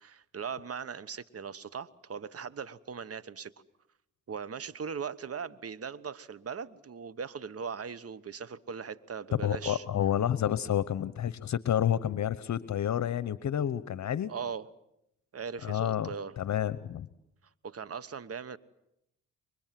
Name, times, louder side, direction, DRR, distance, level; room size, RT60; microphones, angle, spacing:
voice 1, 0.0-3.5 4.3-9.8 14.3-14.7 15.3-16.4 17.6-18.6, right 6 dB, 45° right, 18 dB, 1.2 m, -39 dB
voice 2, 9.3-14.3 15.6-16.1 16.4-17.1, left 10 dB, 60° left, 16 dB, 0.9 m, -29 dB
29.0 x 24.0 x 7.6 m, 0.83 s
supercardioid pair, 60°, 32 cm